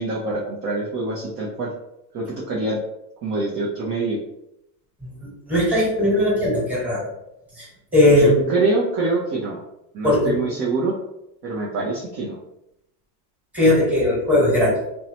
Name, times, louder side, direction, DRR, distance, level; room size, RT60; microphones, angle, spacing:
voice 1, 0.0-1.7 2.1-2.8 3.2-4.2 8.2-9.6 9.9-11.0 11.4-12.4, right 3 dB, 30° right, -4 dB, 0.5 m, -25 dB
voice 2, 5.0-7.1 7.6-7.7 7.9-8.5 10.0-10.4 13.5-14.7, left 1 dB, 5° right, -7 dB, 1.2 m, -18 dB
2.6 x 2.1 x 2.8 m, 0.84 s
supercardioid pair, 125°, 47 cm